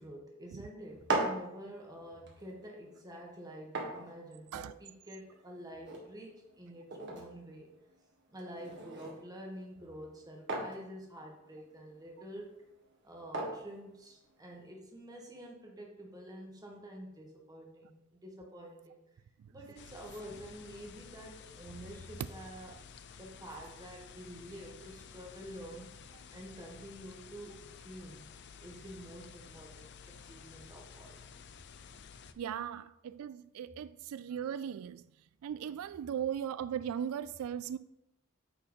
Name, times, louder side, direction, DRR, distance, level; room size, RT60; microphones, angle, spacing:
voice 1, 0.0-7.7 8.3-12.7 13.0-19.0 19.5-22.8 23.2-25.9 26.3-28.2 28.6-31.2, equal, 20° right, 0 dB, 1.6 m, -48 dB
sound 1, 0.8-14.7, right 2 dB, 55° right, 1.7 m, -42 dB
sound 2, 19.8-32.3, left 5 dB, 55° left, 0.5 m, -52 dB
voice 2, 32.4-35.0 35.4-37.8, right 9 dB, 85° right, 16 dB, 0.3 m, -38 dB
9.2 x 4.6 x 5.3 m, 0.87 s
head